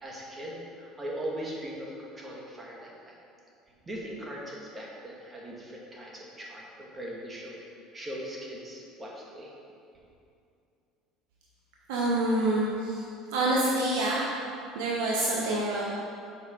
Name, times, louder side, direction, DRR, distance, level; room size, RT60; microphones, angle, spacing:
voice 1, 0.0-3.1 3.9-7.6 7.9-9.5, right 1 dB, 20° right, -3 dB, 1.8 m, -40 dB
voice 2, 11.9-13.0 13.3-14.3 14.7-15.8, right 1 dB, 85° right, -4 dB, 0.9 m, -27 dB
7.2 x 4.7 x 5.1 m, 2.5 s
supercardioid pair, 100°, 0 cm